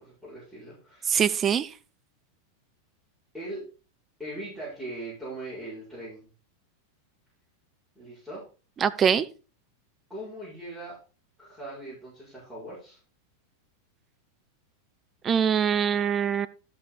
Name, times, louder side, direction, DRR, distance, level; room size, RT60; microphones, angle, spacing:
voice 1, 0.0-1.3 3.3-3.6 4.2-6.3 8.0-8.4 10.1-11.0 11.4-13.0, right 1 dB, ahead, -10 dB, 5.7 m, -40 dB
voice 2, 1.1-1.7 8.8-9.3 15.2-16.5, right 8 dB, 25° right, 12 dB, 0.7 m, -23 dB
12.5 x 5.8 x 4.1 m, 0.35 s
figure-of-eight pair, 90°, 0 cm